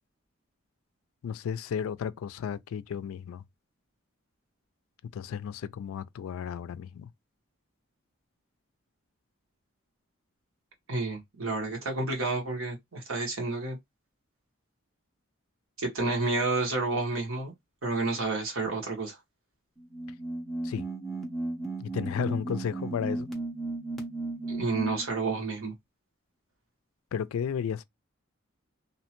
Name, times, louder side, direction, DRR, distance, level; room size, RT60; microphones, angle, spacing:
voice 1, 1.2-3.4 5.1-7.1 20.6-20.8 21.8-23.3 27.1-27.8, left 7 dB, 80° left, 0.3 m, -33 dB
voice 2, 10.9-13.8 15.8-17.5 17.8-19.2 24.5-25.7, right 3 dB, 75° right, 1.2 m, -30 dB
sound 1, 19.8-25.1, right 2 dB, ahead, 0.5 m, -35 dB
2.7 x 2.1 x 2.9 m
head